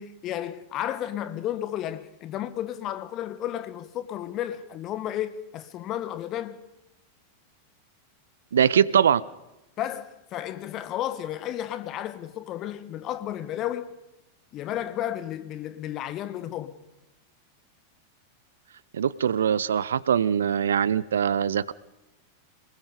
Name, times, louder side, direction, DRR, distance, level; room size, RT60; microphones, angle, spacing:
voice 1, 0.0-6.6 9.8-13.9 14.5-16.7, left 12 dB, 35° left, 1.7 m, -32 dB
voice 2, 8.5-9.2 18.9-21.7, right 8 dB, 65° right, 0.7 m, -22 dB
28.0 x 20.0 x 5.1 m
figure-of-eight pair, 90°, 0 cm